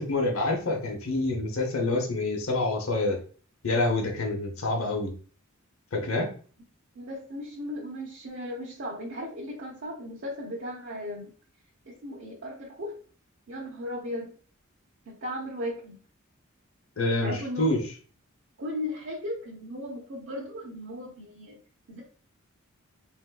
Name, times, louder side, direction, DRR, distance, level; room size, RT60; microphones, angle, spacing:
voice 1, 0.0-3.2 3.6-5.1 5.9-6.3 17.0-17.8, left 2 dB, 80° left, 2 dB, 0.7 m, -27 dB
voice 2, 6.9-11.3 11.9-13.0 13.5-14.3 15.1-16.0 17.2-17.8 18.6-21.6 21.9-22.0, left 1 dB, 60° right, -5 dB, 0.8 m, -36 dB
3.5 x 2.6 x 2.3 m, 0.40 s
head